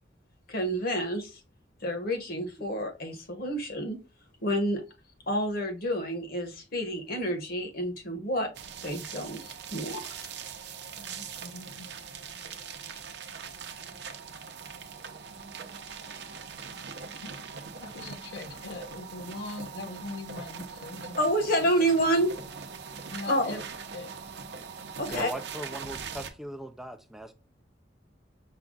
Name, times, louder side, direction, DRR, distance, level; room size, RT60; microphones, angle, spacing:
voice 1, 0.5-1.4 1.8-4.0 4.4-4.8 5.3-8.5 8.8-10.0 21.2-22.3 23.2-23.6 25.0-25.3, right 1 dB, 55° left, 1.3 m, -29 dB
sound 1, 8.5-26.3, right 6 dB, 65° right, 0.7 m, -42 dB
voice 2, 11.0-11.9 17.2-21.2 23.1-23.6 23.9-24.1 25.1-25.2, left 2 dB, 75° left, 0.9 m, -41 dB
voice 3, 25.1-27.3, equal, ahead, 0.3 m, -39 dB
5.7 x 2.3 x 3.7 m
head